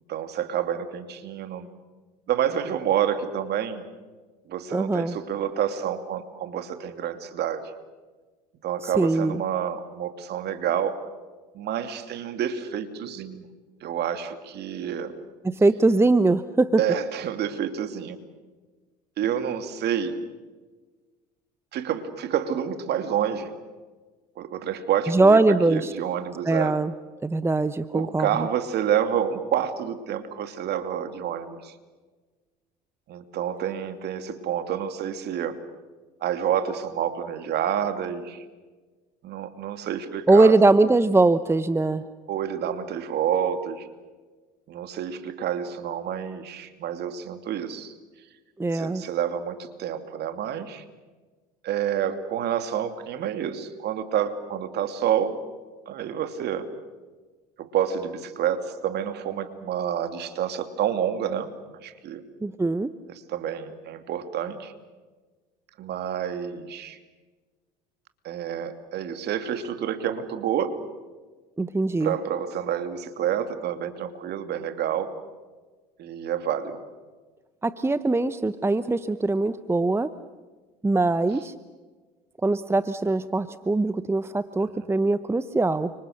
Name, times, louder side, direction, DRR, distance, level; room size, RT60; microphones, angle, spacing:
voice 1, 0.1-1.7 2.3-3.8 4.5-7.7 8.6-11.0 11.5-13.5 13.8-15.1 16.8-18.2 19.2-20.2 21.7-23.5 24.4-25.4 25.7-26.7 27.9-31.7 33.1-35.6 36.2-38.4 39.2-40.5 42.3-43.9 44.7-47.9 48.7-50.8 51.6-55.4 55.9-56.7 57.6-61.5 61.8-62.2 63.1-64.7 65.8-67.0 68.2-70.8 72.0-75.1 76.0-76.8, right 9 dB, 55° right, 8 dB, 2.8 m, -28 dB
voice 2, 4.7-5.2 8.8-9.4 15.4-16.8 25.1-25.9 26.4-26.9 27.2-28.5 40.3-42.0 48.6-49.0 62.4-62.9 71.6-72.2 77.6-80.2 80.8-81.5 82.4-85.9, right 2 dB, 10° right, 14 dB, 0.9 m, -21 dB
29.5 x 26.0 x 6.7 m, 1.3 s
hypercardioid pair, 70°, 21 cm